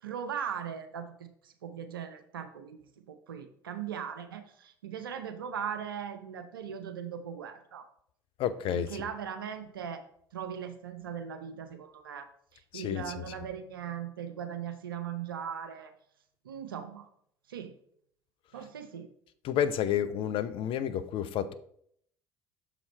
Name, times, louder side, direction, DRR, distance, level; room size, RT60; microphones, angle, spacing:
voice 1, 0.0-7.9 8.7-10.0 10.3-15.9 16.4-17.1 17.5-17.7 18.5-19.1, right 8 dB, 80° right, 9 dB, 0.6 m, -39 dB
voice 2, 8.4-9.0 12.7-13.3 19.4-21.5, left 9 dB, 50° left, 14 dB, 0.6 m, -30 dB
6.8 x 4.9 x 3.3 m, 0.67 s
figure-of-eight pair, 60°, 12 cm